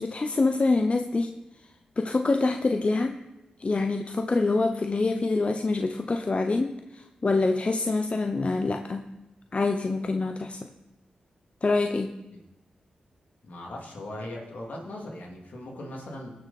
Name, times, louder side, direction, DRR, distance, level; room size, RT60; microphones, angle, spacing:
voice 1, 0.0-1.4 2.0-3.2 3.6-9.1 9.5-10.7 11.6-12.1, left 3 dB, 45° left, 6 dB, 0.7 m, -25 dB
voice 2, 13.4-16.3, left 1 dB, 70° left, -1 dB, 2.9 m, -39 dB
17.5 x 6.5 x 4.3 m, 0.96 s
supercardioid pair, 40°, 3 cm